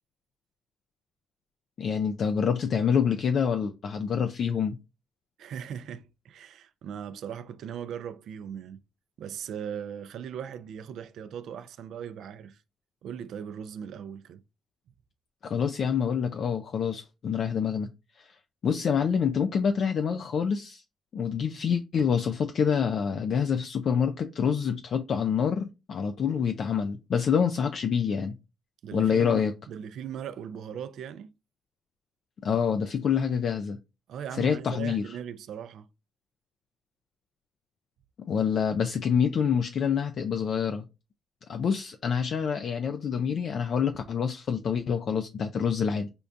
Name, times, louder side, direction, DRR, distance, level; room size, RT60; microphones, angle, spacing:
voice 1, 1.8-4.8 15.4-17.9 18.2-18.3 18.6-20.8 21.1-28.4 28.9-29.5 32.4-33.8 34.4-35.0 38.3-40.8 41.5-46.1, left 7 dB, 55° left, 0.3 m, -26 dB
voice 2, 5.4-8.8 9.2-12.6 13.0-14.4 28.8-31.3 34.1-35.9, right 8 dB, 75° right, 0.4 m, -39 dB
5.2 x 2.2 x 2.5 m
cardioid pair, 90°, 0 cm